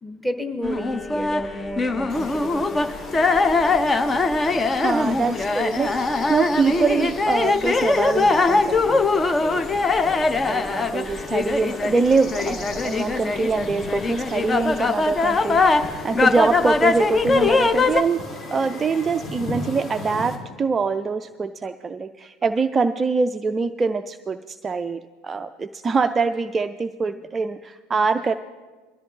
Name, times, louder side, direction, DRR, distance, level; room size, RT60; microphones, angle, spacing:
voice 1, 0.0-3.0 5.1-5.2, equal, 5° left, 6 dB, 1.3 m, -32 dB
sound 1, 0.6-18.0, left 3 dB, 20° left, 0.7 m, -22 dB
sound 2, 2.1-20.4, left 2 dB, 35° left, 2.3 m, -37 dB
voice 2, 4.8-9.6 10.0-18.2 18.5-28.3, right 4 dB, 20° right, 10 dB, 0.4 m, -24 dB
21.5 x 13.5 x 3.1 m, 1.4 s
figure-of-eight pair, 75°, 0 cm